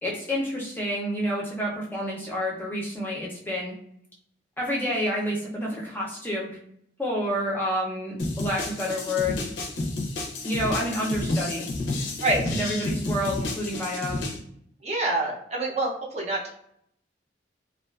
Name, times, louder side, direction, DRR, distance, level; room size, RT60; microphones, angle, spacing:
voice 1, 0.0-3.7 4.6-6.5 7.0-9.5 10.4-11.7 12.5-14.3, equal, 10° left, -4 dB, 0.5 m, -29 dB
sound 1, 8.2-14.4, left 2 dB, 85° left, 0.5 m, -30 dB
voice 2, 12.2-12.5 14.8-16.5, right 2 dB, 40° right, -2 dB, 0.5 m, -26 dB
2.4 x 2.3 x 2.3 m, 0.70 s
head